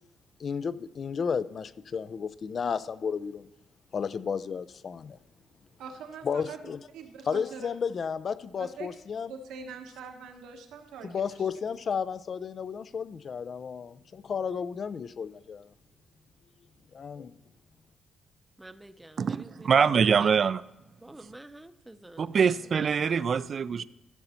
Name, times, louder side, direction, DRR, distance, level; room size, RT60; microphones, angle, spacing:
voice 1, 0.4-3.5 3.9-5.2 6.2-6.8 7.3-9.3 11.0-15.7 16.9-17.3, left 6 dB, 50° left, 0.5 m, -33 dB
voice 2, 5.8-6.6 6.9-7.7 8.6-8.9 9.3-11.4, right 5 dB, 85° right, 1.3 m, -43 dB
voice 3, 18.6-20.3 21.0-22.8 23.8-23.9, right 1 dB, 10° right, 0.6 m, -49 dB
voice 4, 19.2-20.6 22.2-23.8, right 6 dB, 50° right, 0.4 m, -24 dB
14.0 x 6.8 x 4.4 m
cardioid pair, 90°, 0 cm